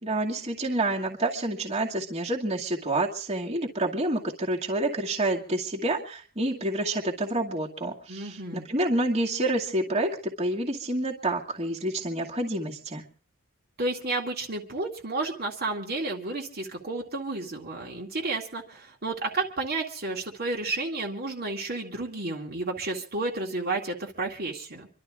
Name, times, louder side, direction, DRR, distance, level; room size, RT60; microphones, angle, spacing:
voice 1, 0.0-13.0, right 1 dB, 30° right, -1 dB, 2.3 m, -28 dB
voice 2, 8.1-8.6 13.8-24.9, right 2 dB, 45° right, 0 dB, 2.1 m, -31 dB
27.0 x 12.5 x 3.7 m, 0.43 s
head